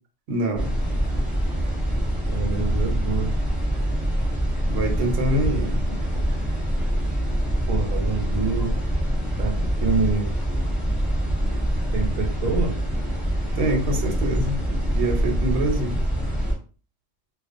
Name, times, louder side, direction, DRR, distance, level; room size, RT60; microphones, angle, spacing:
voice 1, 0.3-0.7 4.7-5.8 13.5-14.6 14.9-16.0, right 1 dB, 60° right, 1 dB, 0.9 m, -25 dB
sound 1, 0.6-16.5, equal, ahead, 0.9 m, -24 dB
voice 2, 2.3-3.3 5.4-5.5 7.7-8.7 9.4-9.5 9.8-10.3 11.9-12.7, right 4 dB, 90° right, 3 dB, 1.1 m, -26 dB
2.4 x 2.3 x 2.4 m, 0.37 s
omnidirectional pair, 1.4 m